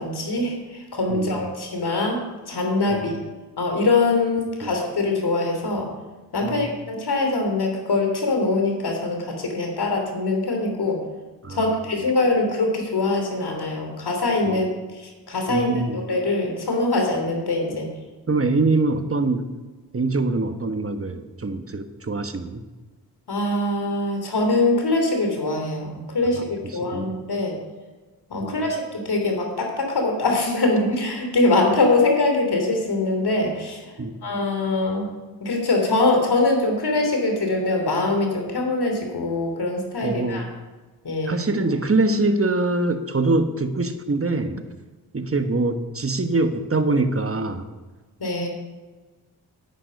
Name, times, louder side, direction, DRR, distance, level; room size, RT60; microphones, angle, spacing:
voice 1, 0.0-3.1 3.6-5.9 6.3-11.0 11.5-17.9 23.3-26.4 26.7-27.6 28.3-33.9 34.2-35.1 35.4-40.4 41.0-41.5 48.2-48.5, left 2 dB, 65° left, 3 dB, 3.1 m, -23 dB
voice 2, 15.5-16.0 18.3-19.5 19.9-22.6 26.9-27.1 28.4-28.7 34.0-34.1 40.0-40.4 41.2-44.6 45.1-47.7, right 2 dB, 30° right, 8 dB, 1.3 m, -24 dB
10.0 x 9.0 x 5.3 m, 1.3 s
cardioid pair, 45°, 42 cm